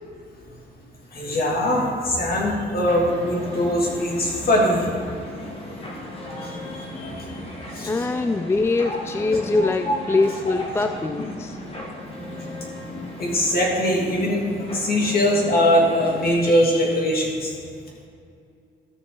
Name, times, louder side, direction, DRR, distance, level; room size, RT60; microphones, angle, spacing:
voice 1, 1.1-4.9 5.7-5.9 6.4-7.1 7.7-8.1 8.8-9.0 9.8-9.9 10.5-10.9 13.2-14.4 14.7-17.5, left 1 dB, 50° left, -2 dB, 2.7 m, -22 dB
sound 1, 2.8-16.4, left 1 dB, 30° left, 1.9 m, -36 dB
voice 2, 7.8-11.6, left 3 dB, 15° left, 8 dB, 0.3 m, -23 dB
14.0 x 6.7 x 4.0 m, 2.4 s
cardioid pair, 100°, 20 cm